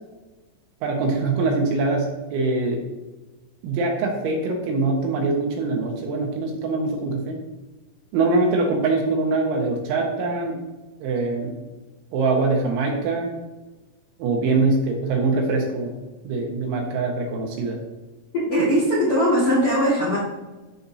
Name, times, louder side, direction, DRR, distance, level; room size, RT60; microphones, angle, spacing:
voice 1, 0.8-2.8 3.6-7.4 8.1-10.5 11.0-11.6 12.1-13.3 14.2-15.9 16.2-17.8 18.6-18.7, right 3 dB, 75° right, 1 dB, 3.5 m, -23 dB
voice 2, 18.3-20.2, equal, 55° left, -8 dB, 1.6 m, -20 dB
14.5 x 5.7 x 2.8 m, 1.2 s
omnidirectional pair, 5.8 m